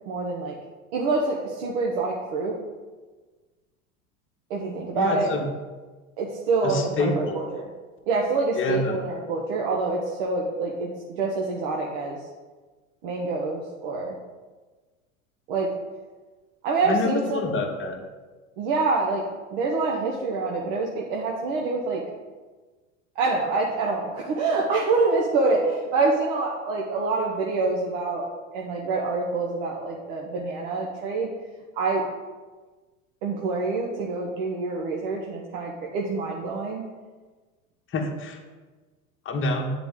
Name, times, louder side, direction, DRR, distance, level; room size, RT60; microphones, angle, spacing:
voice 1, 0.1-0.6 0.9-2.6 4.5-5.3 6.2-7.7 8.1-10.9 11.2-12.2 13.0-14.2 15.5-15.7 16.6-17.5 18.6-19.2 19.5-22.0 23.2-28.3 28.5-31.3 31.8-32.0 33.2-36.8, right 3 dB, 55° right, -2 dB, 1.0 m, -26 dB
voice 2, 4.9-5.4 6.6-7.4 8.6-9.0 16.8-18.0 37.9-38.4 39.2-39.7, left 3 dB, 30° left, 3 dB, 1.1 m, -27 dB
9.1 x 4.0 x 3.6 m, 1.3 s
figure-of-eight pair, 80°, 41 cm